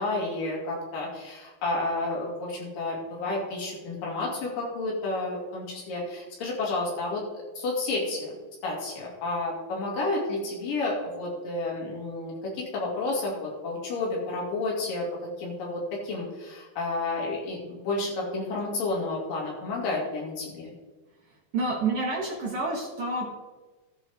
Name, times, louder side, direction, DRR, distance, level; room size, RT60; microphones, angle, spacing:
voice 1, 0.0-8.3 8.6-15.0 15.4-20.7, left 2 dB, 60° left, -3 dB, 4.0 m, -31 dB
voice 2, 21.5-23.3, right 3 dB, 70° right, -1 dB, 1.4 m, -28 dB
13.0 x 8.7 x 3.5 m, 1.2 s
omnidirectional pair, 4.6 m